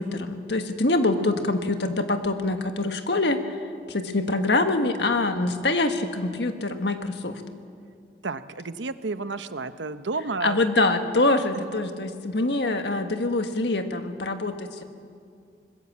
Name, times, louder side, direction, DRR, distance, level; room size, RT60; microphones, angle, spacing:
voice 1, 0.0-3.4 3.9-7.3 10.4-14.8, left 2 dB, 70° left, 6 dB, 1.6 m, -24 dB
voice 2, 8.2-10.6, right 3 dB, 85° right, 11 dB, 0.9 m, -31 dB
26.0 x 20.5 x 7.4 m, 2.3 s
head